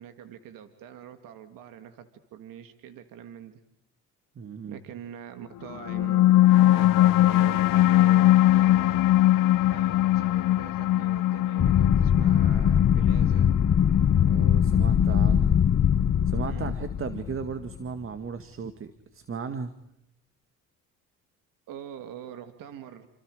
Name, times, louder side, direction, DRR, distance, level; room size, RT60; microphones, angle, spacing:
voice 1, 0.0-3.6 4.7-6.4 6.7-9.0 9.7-13.5 16.5-16.7 21.7-23.1, right 9 dB, 75° right, 8 dB, 2.4 m, -44 dB
voice 2, 4.4-4.8 14.1-15.6 16.3-19.7, right 6 dB, 40° right, 9 dB, 2.0 m, -36 dB
sound 1, 5.7-16.7, left 15 dB, 75° left, 0.8 m, -22 dB
sound 2, 11.6-17.7, left 8 dB, 40° left, 0.9 m, -22 dB
29.5 x 27.5 x 5.0 m, 0.78 s
cardioid pair, 95°, 33 cm